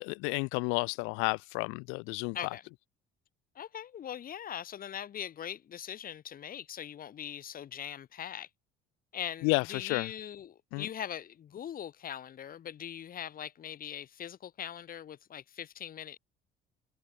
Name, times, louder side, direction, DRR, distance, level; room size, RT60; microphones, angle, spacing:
voice 1, 0.0-2.3 9.4-10.1 10.7-10.8, left 29 dB, 85° left, 0.8 m, -31 dB
voice 2, 2.3-2.7 3.5-8.5 9.1-16.2, left 9 dB, 45° left, 6.7 m, -41 dB
cardioid pair, 120°, 20 cm